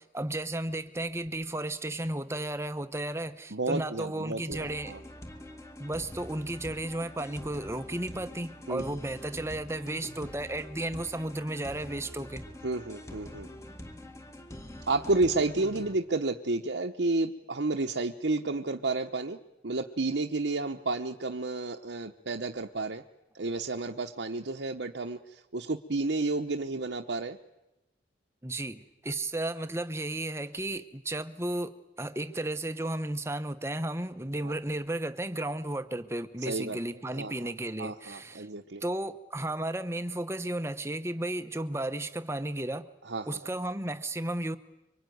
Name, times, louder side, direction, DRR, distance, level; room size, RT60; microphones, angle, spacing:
voice 1, 0.0-5.0 5.8-12.4 28.4-38.5 38.8-42.9 43.3-44.6, right 1 dB, 15° right, 11 dB, 0.9 m, -34 dB
voice 2, 3.5-5.0 8.7-8.8 12.6-13.5 14.9-19.4 19.6-23.0 23.3-27.4 34.4-34.6 36.4-36.8 37.1-37.5 37.8-38.8 43.1-43.5, right 2 dB, 75° right, 3 dB, 1.0 m, -31 dB
sound 1, 4.5-15.9, left 1 dB, 15° left, 1.8 m, -45 dB
25.5 x 24.5 x 9.4 m, 0.97 s
head